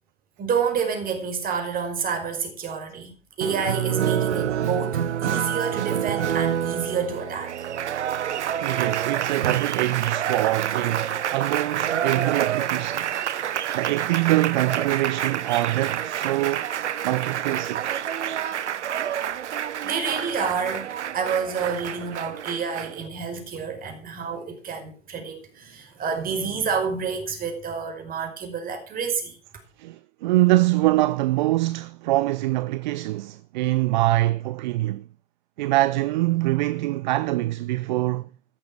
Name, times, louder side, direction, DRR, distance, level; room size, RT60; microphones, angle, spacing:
voice 1, 0.4-7.7 19.8-20.9 21.1-29.4, right 6 dB, 20° right, 5.2 m, -29 dB
Applause, 3.4-23.1, right 9 dB, 60° right, 1.1 m, -27 dB
voice 2, 8.6-13.1 13.7-16.7 17.0-17.9 29.8-35.0 35.6-38.3, right 17 dB, 35° right, 0.6 m, -24 dB
14.5 x 12.5 x 4.7 m
figure-of-eight pair, 105°, 39 cm